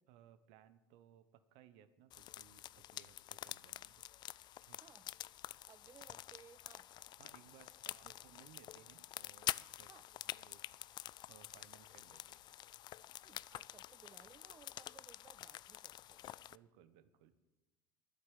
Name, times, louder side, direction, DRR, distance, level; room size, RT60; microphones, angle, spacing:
voice 1, 0.0-4.0 4.6-4.8 6.1-6.2 7.2-9.9 10.2-10.7 11.3-12.4 16.4-17.3, right 10 dB, 60° right, 13 dB, 1.0 m, -64 dB
sound 1, 2.1-16.6, left 13 dB, 40° left, 0.3 m, -48 dB
voice 2, 4.8-5.1 5.7-6.9 7.6-8.3 9.9-10.1 13.2-16.4, right 7 dB, 25° right, 15 dB, 0.5 m, -62 dB
10.5 x 8.8 x 9.1 m, 1.1 s
figure-of-eight pair, 65°, 11 cm